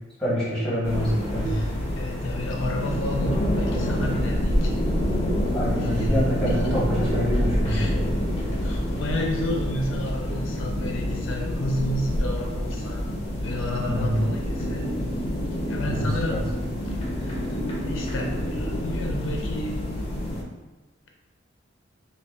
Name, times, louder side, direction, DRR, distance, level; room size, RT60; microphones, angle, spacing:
voice 1, 0.2-1.6 5.5-8.0 13.8-14.2 15.9-16.4, equal, 5° left, -8 dB, 1.1 m, -26 dB
sound 1, 0.8-20.4, equal, 30° left, 0.6 m, -27 dB
voice 2, 1.5-4.7 5.8-6.1 6.5-6.7 7.7-7.9 8.6-13.0 13.4-14.8 15.7-16.4 17.1-17.6 17.8-19.8, left 1 dB, 75° left, 0 dB, 0.5 m, -31 dB
5.2 x 2.3 x 2.4 m, 1.1 s
head